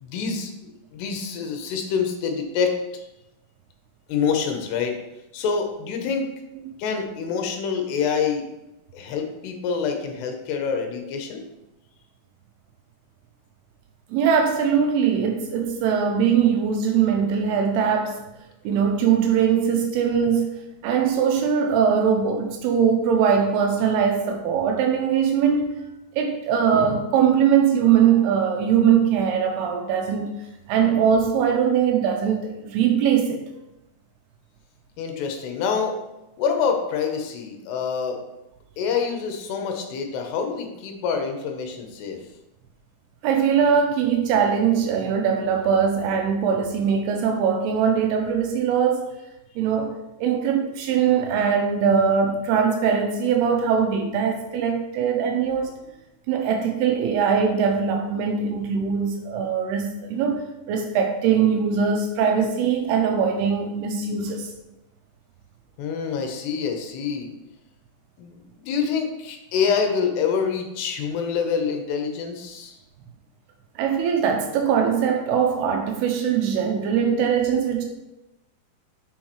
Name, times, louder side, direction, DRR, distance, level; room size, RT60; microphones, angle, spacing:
voice 1, 0.0-2.7 4.1-5.0 5.3-6.2 6.8-8.4 8.9-11.4 35.0-35.9 36.4-38.2 38.8-42.2 65.8-67.3 68.2-72.8, left 6 dB, 80° left, 2.9 m, -26 dB
voice 2, 14.1-18.2 18.7-25.8 26.2-30.3 30.7-33.4 43.2-49.1 49.6-49.9 50.2-55.7 56.3-64.5 73.8-77.9, right 7 dB, 85° right, 2.5 m, -21 dB
6.2 x 6.0 x 3.1 m
omnidirectional pair, 4.8 m